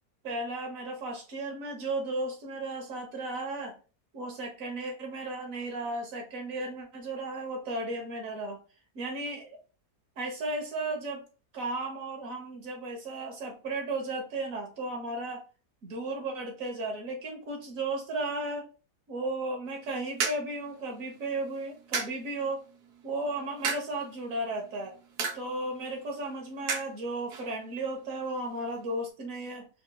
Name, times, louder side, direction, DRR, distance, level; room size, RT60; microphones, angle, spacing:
voice 1, 0.2-3.8 4.1-8.6 8.9-9.6 10.2-11.3 11.5-15.4 15.8-18.7 19.1-22.6 23.0-25.0 25.3-29.7, right 2 dB, 55° right, 2 dB, 1.4 m, -35 dB
sound 1, 19.7-29.1, right 5 dB, 75° right, 1.2 m, -39 dB
5.0 x 3.1 x 2.2 m, 0.35 s
omnidirectional pair, 1.8 m